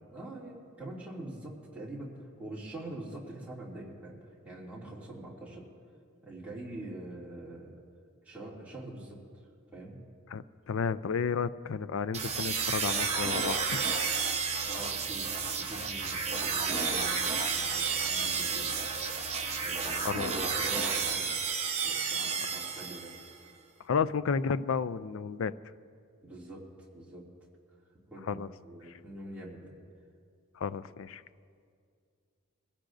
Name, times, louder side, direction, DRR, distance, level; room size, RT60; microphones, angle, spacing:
voice 1, 0.1-4.2 4.4-5.6 6.2-7.7 8.2-9.2 9.7-9.9 14.7-18.7 19.6-21.4 21.8-23.1 26.2-26.6 26.9-27.2 28.1-29.7, right 1 dB, 5° right, -6 dB, 2.5 m, -44 dB
voice 2, 10.3-13.8 20.0-20.3 23.8-25.5 28.3-28.5 28.9-29.0 30.6-31.2, left 5 dB, 60° left, 15 dB, 0.4 m, -32 dB
sound 1, 12.1-23.3, right 5 dB, 30° right, 1.0 m, -31 dB
23.0 x 16.5 x 2.6 m, 2.2 s
head